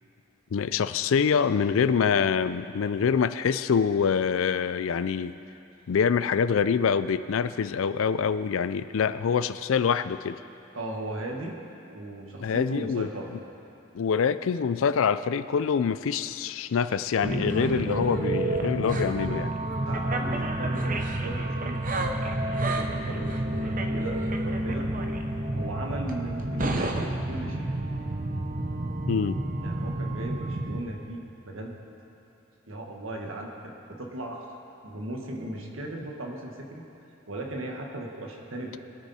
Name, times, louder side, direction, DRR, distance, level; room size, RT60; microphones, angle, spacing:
voice 1, 0.5-5.4 5.9-10.4 12.4-13.1 13.9-19.5 29.1-29.4, left 6 dB, 75° left, 13 dB, 0.4 m, -25 dB
voice 2, 10.7-11.6 11.9-13.3 19.9-22.1 22.4-24.9 25.5-27.7 29.6-31.7 32.7-34.4 34.8-36.8 37.3-38.8, right 1 dB, 75° right, 1 dB, 1.6 m, -37 dB
sound 1, 17.2-30.8, right 1 dB, 40° right, 0.8 m, -29 dB
22.0 x 9.6 x 4.3 m, 2.9 s
head